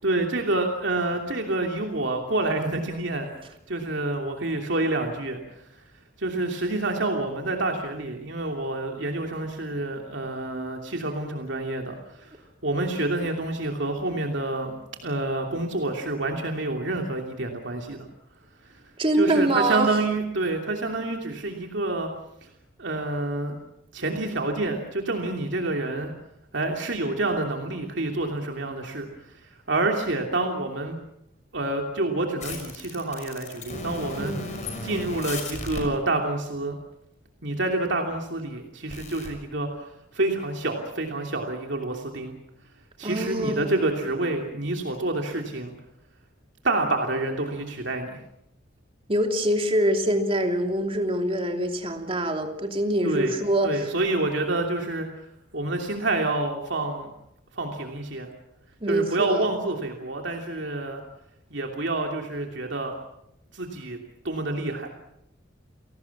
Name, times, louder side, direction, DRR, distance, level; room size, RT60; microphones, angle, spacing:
voice 1, 0.0-5.4 6.2-12.4 12.6-14.7 15.0-18.1 19.1-22.1 22.8-23.6 23.9-26.1 26.5-31.0 31.5-34.3 34.8-36.8 37.4-42.3 43.0-45.7 46.6-48.1 53.0-53.3 53.6-55.1 55.5-57.1 57.5-58.3 58.9-61.0 61.5-62.9 63.5-64.0 64.2-64.9, right 2 dB, 65° right, 3 dB, 2.9 m, -28 dB
voice 2, 19.0-19.9 34.2-34.6 43.0-43.9 49.1-53.9 58.8-59.5, right 1 dB, 30° right, 4 dB, 2.9 m, -25 dB
sound 1, 32.4-35.8 38.9-39.3, left 2 dB, 40° left, 6.0 m, -35 dB
30.0 x 18.5 x 7.3 m, 0.79 s
head